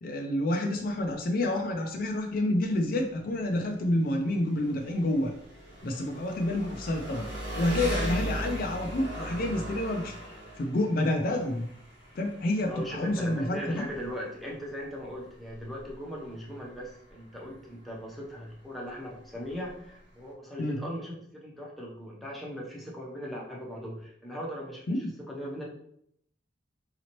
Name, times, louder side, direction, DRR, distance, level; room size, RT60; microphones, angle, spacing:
voice 1, 0.0-5.3 5.8-7.3 7.6-10.1 10.6-11.7 12.2-13.8 20.6-20.8 24.9-25.1, left 1 dB, 50° left, 3 dB, 0.4 m, -28 dB
Engine, 0.8-20.3, right 1 dB, 85° right, 1.2 m, -40 dB
voice 2, 12.7-25.6, equal, ahead, -4 dB, 0.8 m, -39 dB
4.0 x 2.9 x 2.9 m, 0.68 s
head